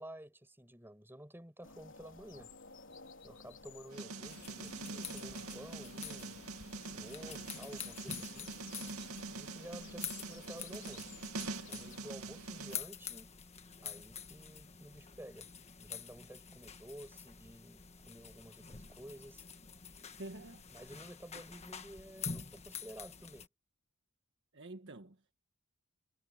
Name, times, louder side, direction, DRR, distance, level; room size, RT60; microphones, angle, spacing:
voice 1, 0.0-2.5 3.2-6.4 6.9-8.6 9.3-11.2 11.7-13.3 13.8-15.5 15.8-19.4 20.7-23.5, right 1 dB, 10° right, 5.8 m, -52 dB
sound 1, 1.6-12.0, left 4 dB, 60° left, 3.9 m, -55 dB
sound 2, 3.9-12.8, right 3 dB, 80° right, 2.3 m, -45 dB
sound 3, 4.3-23.5, left 7 dB, 30° left, 1.5 m, -48 dB
voice 2, 20.1-20.7 24.5-25.3, right 2 dB, 55° right, 1.6 m, -48 dB
head